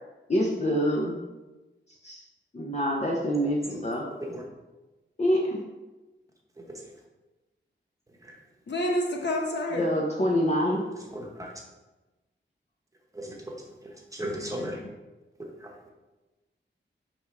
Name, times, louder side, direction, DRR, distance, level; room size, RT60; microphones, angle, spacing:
voice 1, 0.3-1.2 2.0-2.2 2.5-4.0 5.2-5.6 9.8-10.8, equal, 35° left, -2 dB, 0.7 m, -26 dB
voice 2, 8.7-9.9 14.5-14.9, left 1 dB, 65° left, 0 dB, 1.0 m, -29 dB
voice 3, 11.1-11.5 13.1-14.8 15.4-15.7, equal, 15° right, -1 dB, 1.0 m, -37 dB
5.0 x 3.5 x 5.5 m, 1.1 s
wide cardioid pair, 140°, 20 cm